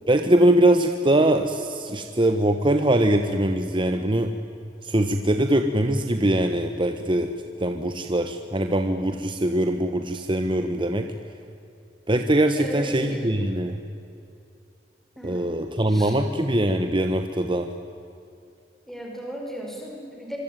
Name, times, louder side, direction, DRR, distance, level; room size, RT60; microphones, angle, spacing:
voice 1, 0.1-4.3 4.8-7.3 7.6-11.1 12.1-13.8 15.2-17.7, right 1 dB, 30° right, 6 dB, 1.3 m, -22 dB
voice 2, 12.6-13.2 15.2-15.5 15.9-16.1 18.9-20.4, equal, ahead, 0 dB, 5.0 m, -36 dB
25.5 x 24.5 x 9.3 m, 2.7 s
head